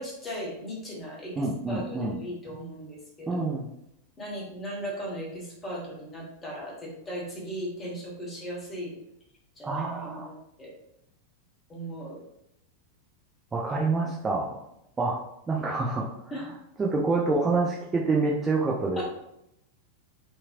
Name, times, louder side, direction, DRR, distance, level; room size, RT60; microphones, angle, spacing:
voice 1, 0.0-3.5 4.2-8.9 9.6-10.7 11.7-12.2 16.3-16.4 19.0-19.1, equal, 20° left, -4 dB, 1.1 m, -37 dB
voice 2, 1.4-2.2 3.3-3.7 9.6-10.3 13.5-14.5 15.0-15.2 15.5-16.5 16.8-19.0, right 3 dB, 15° right, -3 dB, 0.4 m, -27 dB
2.8 x 2.7 x 2.4 m, 0.81 s
figure-of-eight pair, 90°, 0 cm